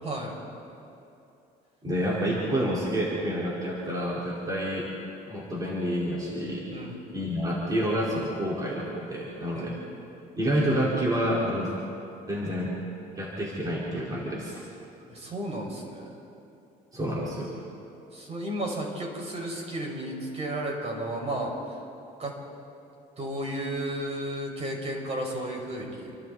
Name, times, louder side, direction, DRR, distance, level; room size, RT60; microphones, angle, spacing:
voice 1, 0.0-0.4 6.7-7.0 9.5-9.7 15.1-16.1 18.1-21.8 22.2-22.4 23.2-26.1, right 1 dB, 40° right, 0 dB, 6.0 m, -33 dB
voice 2, 1.8-4.9 5.3-6.7 7.1-9.8 10.4-11.7 12.3-12.7 13.2-14.6 16.9-17.6, equal, 20° right, -6 dB, 4.8 m, -28 dB
29.5 x 24.0 x 4.3 m, 2.7 s
cardioid pair, 110°, 17 cm